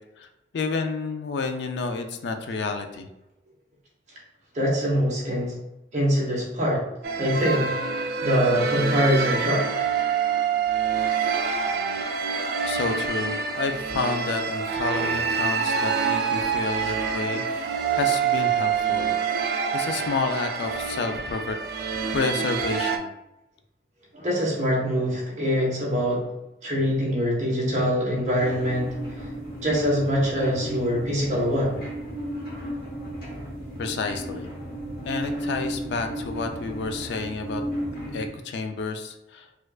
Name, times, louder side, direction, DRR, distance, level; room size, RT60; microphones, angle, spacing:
voice 1, 0.2-3.1 12.7-19.1 19.7-21.6 22.1-23.1 33.8-34.5 35.0-37.6 38.1-39.5, left 4 dB, 75° left, 6 dB, 0.4 m, -30 dB
voice 2, 4.5-5.5 5.9-6.8 7.2-7.7 8.2-9.7 24.1-26.3 26.6-29.0 29.6-31.8, equal, 40° right, -4 dB, 1.0 m, -24 dB
sound 1, 7.0-23.0, right 6 dB, 60° right, 0.3 m, -26 dB
sound 2, 28.4-38.3, right 1 dB, 55° left, 1.1 m, -34 dB
4.3 x 2.4 x 2.3 m, 0.89 s
head